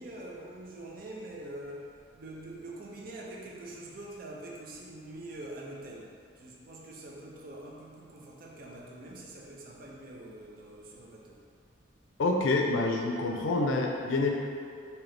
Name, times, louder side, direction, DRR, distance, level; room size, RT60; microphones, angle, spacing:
voice 1, 0.0-1.9 2.1-11.4, right 1 dB, 45° right, -2 dB, 0.5 m, -44 dB
voice 2, 12.2-14.3, left 2 dB, 80° left, 1 dB, 0.4 m, -27 dB
3.8 x 2.8 x 3.3 m, 2.4 s
head